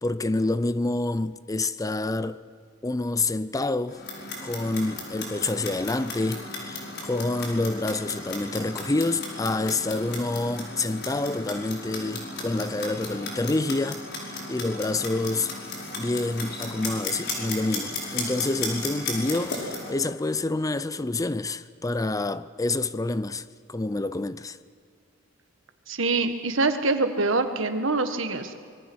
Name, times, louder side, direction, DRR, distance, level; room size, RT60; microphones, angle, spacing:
voice 1, 0.0-2.4 2.8-4.0 4.4-15.5 16.0-24.6, left 2 dB, 15° left, 0.5 m, -28 dB
Clock, 3.9-19.9, left 2 dB, 55° left, 5.5 m, -35 dB
voice 2, 25.9-28.6, right 3 dB, 75° right, 1.8 m, -25 dB
25.5 x 22.5 x 6.3 m
head